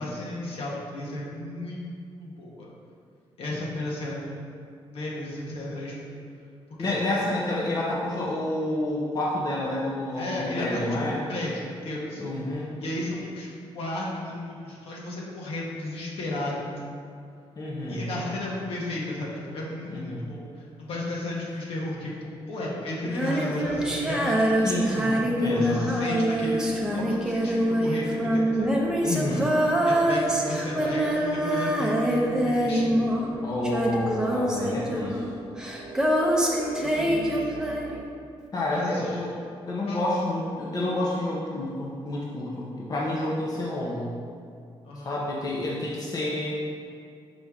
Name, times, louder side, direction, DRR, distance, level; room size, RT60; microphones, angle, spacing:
voice 1, 0.0-1.8 2.2-2.7 3.4-4.5 4.9-6.1 6.8-7.2 10.1-12.2 12.8-13.5 13.7-16.8 17.9-22.1 22.5-24.5 25.5-26.6 26.9-28.7 29.9-33.0 36.8-37.5 38.7-39.1 39.9-40.1 44.8-45.1, left 1 dB, 70° left, -4 dB, 1.3 m, -33 dB
voice 2, 6.8-11.2 12.2-12.7 17.6-18.1 19.8-20.2 24.6-25.8 29.0-29.5 33.4-35.2 38.5-39.3 39.7-44.1 45.0-46.6, left 1 dB, 40° left, -5 dB, 0.9 m, -29 dB
Female singing, 23.0-33.4 33.6-38.1, right 1 dB, 5° right, 0.7 m, -25 dB
sound 1, 23.6-38.0, right 2 dB, 45° right, 0.5 m, -40 dB
5.3 x 5.0 x 3.6 m, 2.3 s
cardioid pair, 110°, 10 cm